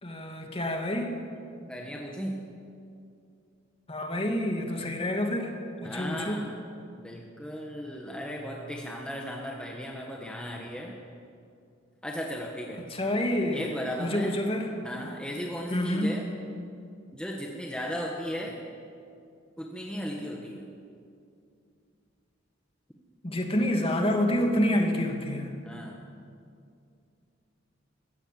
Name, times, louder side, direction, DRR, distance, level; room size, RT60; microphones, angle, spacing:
voice 1, 0.0-1.2 3.9-6.5 12.9-13.6 14.0-14.7 15.7-16.2 23.2-25.5, left 1 dB, 30° left, 2 dB, 2.6 m, -28 dB
voice 2, 1.7-2.4 5.8-6.6 7.0-11.0 12.0-12.8 13.5-14.3 14.8-16.3 17.1-18.6 19.6-20.7 25.6-26.0, equal, 5° left, -1 dB, 1.6 m, -36 dB
22.0 x 16.0 x 7.8 m, 2.4 s
head